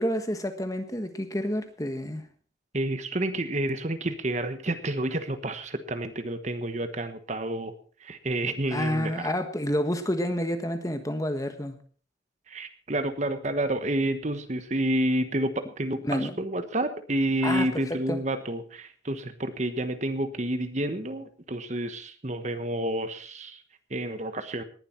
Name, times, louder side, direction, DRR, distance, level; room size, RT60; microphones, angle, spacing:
voice 1, 0.0-2.2 8.7-11.8 16.0-16.4 17.4-18.2, equal, 20° left, 8 dB, 1.4 m, -29 dB
voice 2, 2.7-7.7 8.0-9.3 12.5-23.6 23.9-24.6, right 1 dB, 40° right, 10 dB, 1.1 m, -29 dB
19.0 x 11.0 x 4.4 m, 0.44 s
head